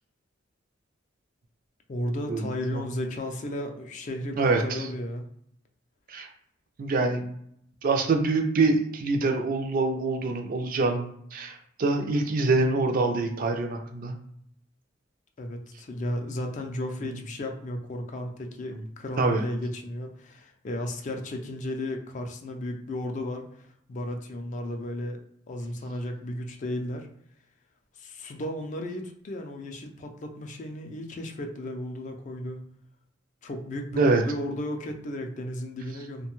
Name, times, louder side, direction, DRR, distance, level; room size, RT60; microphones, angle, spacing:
voice 1, 1.9-5.3 15.4-25.2 25.5-27.1 28.0-32.6 33.4-36.3, left 1 dB, 40° left, 4 dB, 0.4 m, -34 dB
voice 2, 4.4-4.9 6.1-6.3 6.8-7.2 7.8-14.1 17.0-17.1 18.7-18.8 19.2-19.4 34.0-34.2, right 3 dB, 45° right, 4 dB, 0.4 m, -25 dB
2.6 x 2.2 x 2.9 m, 0.70 s
head